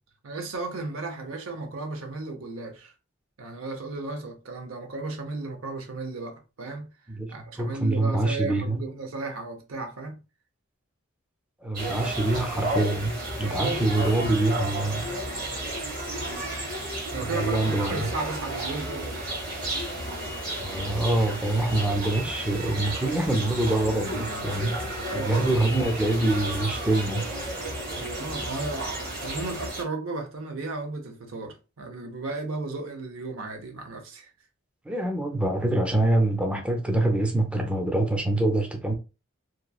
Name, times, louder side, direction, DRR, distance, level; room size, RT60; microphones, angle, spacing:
voice 1, 0.2-2.9 3.4-6.9 7.3-10.2 13.4-13.8 14.9-15.1 17.1-19.2 25.1-25.6 27.5-34.3, right 3 dB, 85° right, 0.7 m, -34 dB
voice 2, 7.2-8.8 11.6-15.1 17.3-18.1 20.6-27.3 34.9-38.9, right 1 dB, 5° right, 0.4 m, -25 dB
sound 1, 11.7-29.8, right 1 dB, 45° right, 1.4 m, -32 dB
2.9 x 2.3 x 2.3 m
head